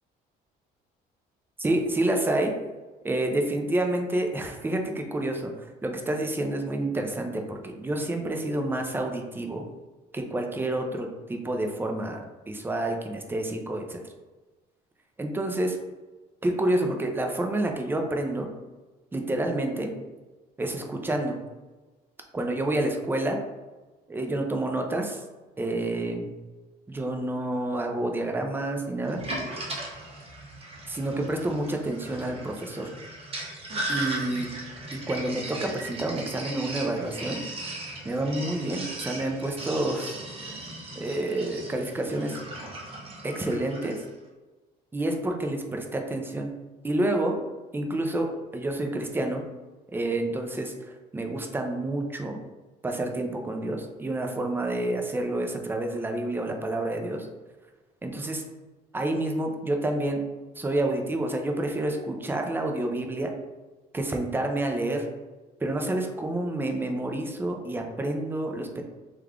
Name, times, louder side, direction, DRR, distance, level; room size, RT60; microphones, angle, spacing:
voice 1, 1.6-2.6 3.0-9.6 10.1-14.0 15.2-15.8 16.4-18.5 19.1-19.9 20.6-21.4 22.3-23.4 24.1-25.2 25.6-26.3 26.9-29.2 30.9-33.0 33.9-34.5 34.9-37.4 38.0-40.1 41.0-42.4 43.2-44.0 44.9-46.5 46.8-47.4 47.7-49.5 49.9-52.4 52.8-57.3 58.0-58.4 58.9-60.2 60.6-63.3 63.9-65.1 65.6-68.8, right 1 dB, 10° right, 3 dB, 0.5 m, -29 dB
Sink (filling or washing), 29.1-44.1, right 1 dB, 35° right, 0.8 m, -37 dB
3.1 x 2.4 x 3.5 m, 1.2 s
cardioid pair, 110°, 17 cm